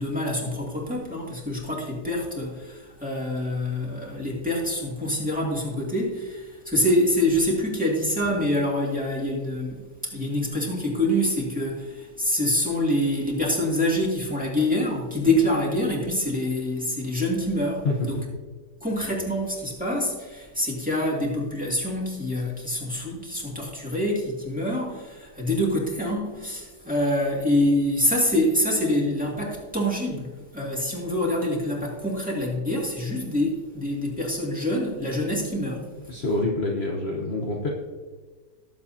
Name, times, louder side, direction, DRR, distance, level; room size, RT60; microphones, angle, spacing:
voice 1, 0.0-18.2 18.8-35.8, left 1 dB, 5° right, -4 dB, 2.4 m, -26 dB
voice 2, 17.8-18.3 36.1-37.7, left 2 dB, 45° left, -1 dB, 1.2 m, -26 dB
19.0 x 7.6 x 2.8 m, 1.4 s
omnidirectional pair, 1.8 m